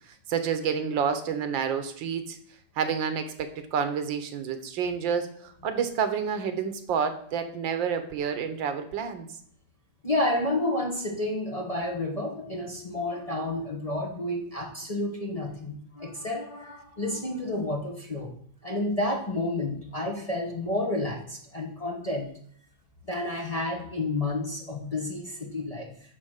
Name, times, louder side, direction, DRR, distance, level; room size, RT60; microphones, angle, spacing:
voice 1, 0.1-2.4 2.8-9.3, right 7 dB, 85° right, 9 dB, 1.7 m, -29 dB
voice 2, 10.0-18.3 18.6-22.3 23.1-25.9, left 2 dB, 25° left, 0 dB, 0.9 m, -30 dB
11.0 x 3.9 x 6.5 m, 0.62 s
omnidirectional pair, 2.0 m